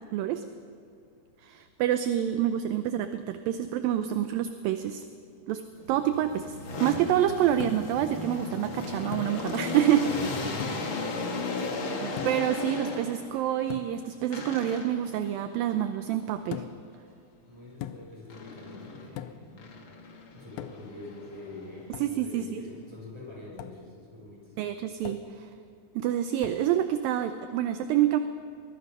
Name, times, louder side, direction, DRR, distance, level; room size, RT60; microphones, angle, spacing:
voice 1, 0.1-0.4 1.4-5.0 5.5-5.6 5.9-10.1 12.0-16.7 22.0-22.6 24.6-25.5 26.0-28.2, right 11 dB, 80° right, 8 dB, 2.1 m, -27 dB
sound 1, 5.8-13.4 14.3-15.1 18.3-19.1 19.6-22.0, left 3 dB, 45° left, 1.6 m, -36 dB
sound 2, 7.6-8.0 9.1-9.4 10.6-11.0 12.2-12.6 13.7-14.0 16.5-16.9 17.8-18.2 19.2-19.5 20.6-21.0 21.9-22.2 23.6-23.8 25.0-25.4 26.4-26.7, left 12 dB, 80° left, 2.4 m, -40 dB
voice 2, 10.1-10.9 17.4-19.7 20.3-24.5, left 2 dB, 5° right, -4 dB, 6.6 m, -44 dB
23.5 x 20.5 x 5.6 m, 2.4 s
omnidirectional pair, 4.7 m